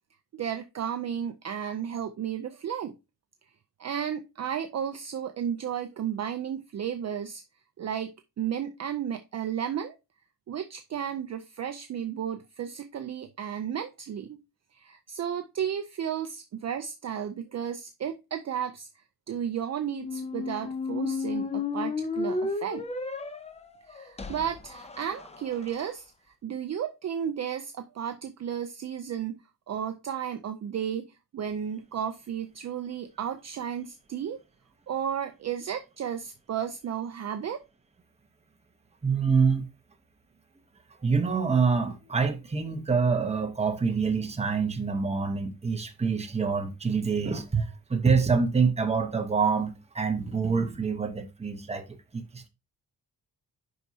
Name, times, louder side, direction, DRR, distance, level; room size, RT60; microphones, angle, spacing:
voice 1, 0.3-3.0 3.8-7.4 7.8-10.0 10.5-14.4 14.7-18.9 19.3-22.9 23.9-26.1 26.4-29.4 29.7-34.4 34.9-37.6, right 9 dB, 45° right, 0.5 m, -33 dB
sound 1, 19.9-25.8, left 4 dB, 15° left, 0.5 m, -33 dB
voice 2, 39.0-39.7 41.0-52.5, right 5 dB, 15° right, 0.9 m, -26 dB
7.7 x 5.5 x 2.7 m
wide cardioid pair, 165°, 39 cm